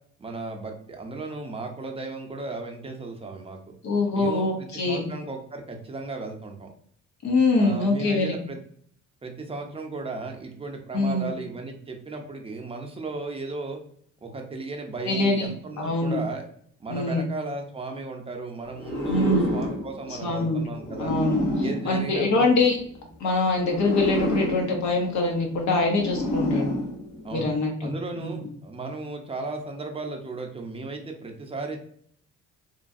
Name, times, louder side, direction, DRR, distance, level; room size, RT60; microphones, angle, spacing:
voice 1, 0.2-3.6 4.1-6.7 7.6-8.6 9.2-13.8 14.2-16.4 16.8-21.1 21.6-22.5 27.2-27.5 27.8-31.8, right 3 dB, 20° right, 2 dB, 0.6 m, -35 dB
voice 2, 3.8-5.1 7.2-8.3 10.9-11.3 15.1-15.5 15.8-16.2 16.9-17.3 19.1-19.5 20.2-20.6 21.0-21.4 21.8-22.8 23.2-26.7 27.3-28.3, left 2 dB, 65° left, 1 dB, 1.0 m, -24 dB
sound 1, 18.7-22.9 23.6-27.6, left 1 dB, 90° left, 1.1 m, -30 dB
3.1 x 2.2 x 2.6 m, 0.63 s
cardioid pair, 90°, 30 cm